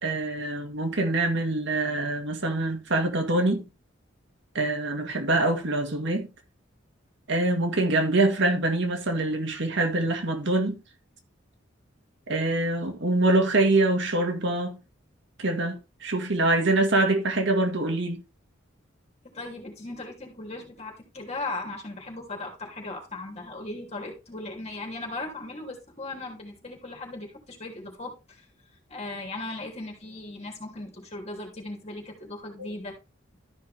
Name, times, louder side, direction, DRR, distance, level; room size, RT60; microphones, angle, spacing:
voice 1, 0.0-3.6 4.6-6.3 7.3-10.8 12.3-14.8 15.4-18.2, right 2 dB, 65° right, 1.8 m, -24 dB
voice 2, 19.2-28.1 28.9-32.9, left 2 dB, 35° left, 3.1 m, -37 dB
13.0 x 5.7 x 3.5 m
head